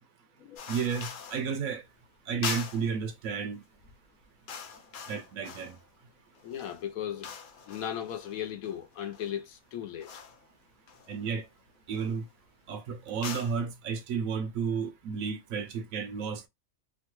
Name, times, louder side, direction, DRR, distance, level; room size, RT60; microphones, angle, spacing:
sound 1, 0.6-1.5 2.4-3.0 3.7-3.9 4.2-5.9 6.3-9.4 10.0-10.4 10.9-11.4 11.9-12.2 13.1-13.6, left 6 dB, 65° left, 0.5 m, -42 dB
voice 1, 0.7-1.8 2.3-3.6 5.1-5.8 11.1-11.5 11.9-12.3 12.7-16.4, right 6 dB, 80° right, 1.0 m, -32 dB
voice 2, 6.4-7.3 7.7-10.1, left 10 dB, 80° left, 1.1 m, -37 dB
3.0 x 2.2 x 3.0 m
omnidirectional pair, 1.4 m